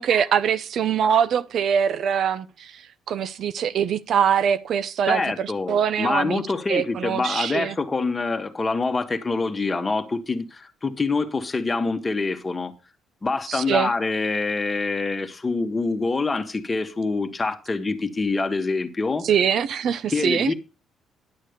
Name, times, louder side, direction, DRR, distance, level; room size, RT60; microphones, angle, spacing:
voice 1, 0.0-2.8 3.1-6.4 6.7-7.8 13.5-13.9 19.2-20.5, right 8 dB, 65° right, 0.6 m, -23 dB
voice 2, 5.1-12.7 13.2-19.3 20.1-20.5, left 3 dB, 25° left, 1.5 m, -25 dB
10.5 x 6.4 x 5.2 m
cardioid pair, 90°, 0 cm